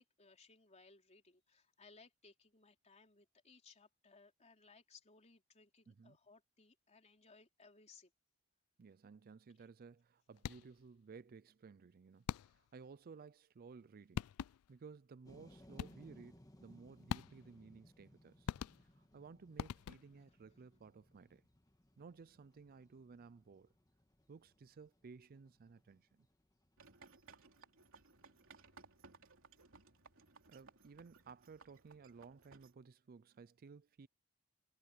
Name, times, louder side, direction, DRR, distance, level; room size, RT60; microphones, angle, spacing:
voice 1, 0.0-8.1, left 4 dB, 30° left, 3.7 m, -64 dB
voice 2, 5.9-6.2 8.8-14.3 14.7-18.5 18.8-21.4 22.0-23.7 24.3-26.3 30.5-34.1, right 5 dB, 45° right, 0.4 m, -57 dB
sound 1, 10.4-10.9 12.3-12.8 13.8-13.9 14.2-14.8 15.8-16.2 17.1-17.6 18.5-19.1 19.6-20.3, left 8 dB, 85° left, 0.3 m, -44 dB
sound 2, 15.3-31.2, left 1 dB, 15° left, 1.6 m, -66 dB
sound 3, 26.8-32.7, right 4 dB, 65° right, 3.5 m, -62 dB
head